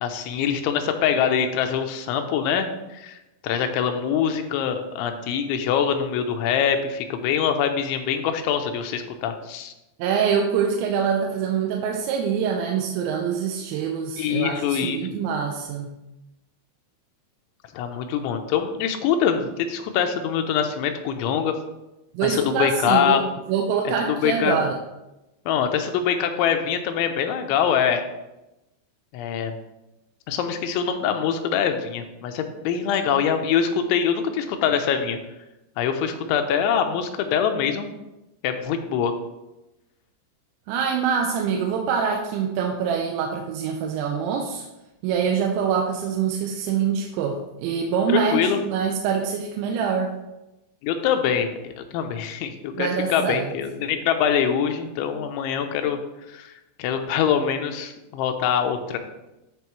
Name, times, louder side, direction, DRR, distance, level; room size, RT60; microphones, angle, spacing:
voice 1, 0.0-3.2 3.4-9.7 14.2-15.0 17.7-21.5 22.2-23.2 24.1-24.6 25.5-28.1 29.1-29.6 30.3-35.2 35.8-37.9 38.4-39.1 48.1-48.6 50.8-56.0 56.3-56.5 56.8-59.0, left 8 dB, 90° left, 6 dB, 3.1 m, -24 dB
voice 2, 10.0-15.9 22.1-23.2 23.5-24.7 40.7-44.7 45.0-48.4 48.7-50.1 52.7-53.5, right 7 dB, 85° right, 1 dB, 3.0 m, -25 dB
12.5 x 5.3 x 3.1 m, 0.97 s
omnidirectional pair, 5.3 m